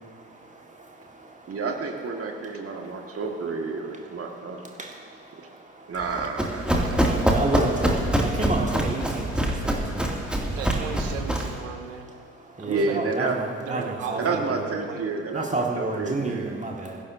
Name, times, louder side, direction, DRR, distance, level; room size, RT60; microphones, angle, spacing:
voice 1, 0.0-1.5 2.8-3.2 4.7-5.9 6.9-10.6 12.1-14.7 15.3-17.0, right 2 dB, 20° right, 1 dB, 1.8 m, -32 dB
voice 2, 1.5-4.6 5.9-7.4 12.7-13.4 14.1-16.6, right 4 dB, 35° right, 2 dB, 2.0 m, -30 dB
Run, 6.0-11.6, right 1 dB, ahead, 2.4 m, -25 dB
voice 3, 10.5-12.1 12.6-13.0 13.7-15.1, right 8 dB, 75° right, 6 dB, 1.1 m, -36 dB
26.0 x 16.0 x 2.7 m, 2.1 s
figure-of-eight pair, 45°, 39 cm